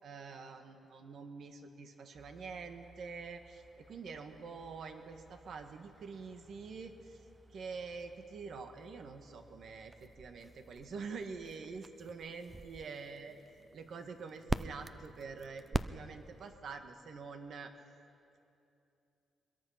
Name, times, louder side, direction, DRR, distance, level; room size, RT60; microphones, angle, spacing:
voice 1, 0.0-7.2 7.5-13.4 13.7-17.7, right 5 dB, 60° right, 6 dB, 1.6 m, -46 dB
sound 1, 2.1-16.5, right 2 dB, 20° right, 0.5 m, -46 dB
24.0 x 22.0 x 5.8 m, 2.7 s
cardioid pair, 115°, 0 cm